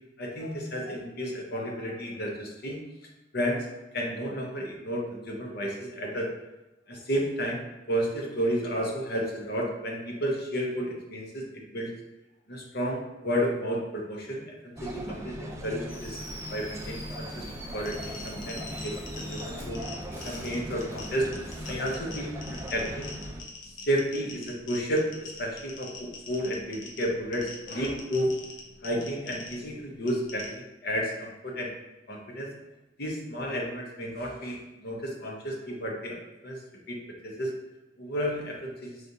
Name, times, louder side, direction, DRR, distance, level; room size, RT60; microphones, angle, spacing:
voice 1, 0.2-2.8 3.3-3.7 3.9-6.3 6.9-11.9 12.5-16.2 16.5-17.4 17.7-19.8 20.2-21.3 21.7-23.1 23.9-25.1 25.4-28.3 28.8-31.7 32.1-32.5 33.0-36.6 36.9-37.0 37.2-37.5 38.0-39.0, equal, 55° left, -1 dB, 0.9 m, -32 dB
sound 1, 14.8-23.4, equal, 15° right, 0.4 m, -39 dB
Fireworks, 15.9-21.9, equal, 10° left, 0.9 m, -45 dB
sound 2, 17.6-30.5, left 3 dB, 85° left, 0.9 m, -45 dB
5.0 x 3.2 x 2.7 m, 1.0 s
head